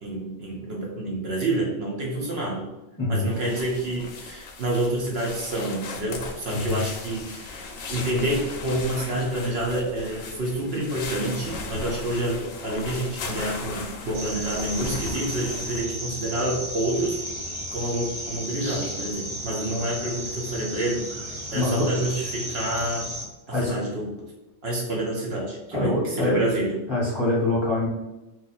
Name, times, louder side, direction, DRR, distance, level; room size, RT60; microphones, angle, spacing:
voice 1, 0.0-2.7 3.1-17.2 17.7-21.0 21.5-23.1 23.5-24.2 24.6-26.8, right 1 dB, 60° right, -1 dB, 0.9 m, -28 dB
sound 1, 3.3-15.8, left 3 dB, 60° left, 0.7 m, -37 dB
voice 2, 6.5-6.8 21.5-21.9 23.5-23.8 25.7-26.4 26.9-27.9, left 2 dB, 25° left, -7 dB, 0.8 m, -24 dB
sound 2, 14.1-23.2, equal, 30° right, 0.6 m, -34 dB
2.8 x 2.4 x 3.9 m, 1.0 s
omnidirectional pair, 1.3 m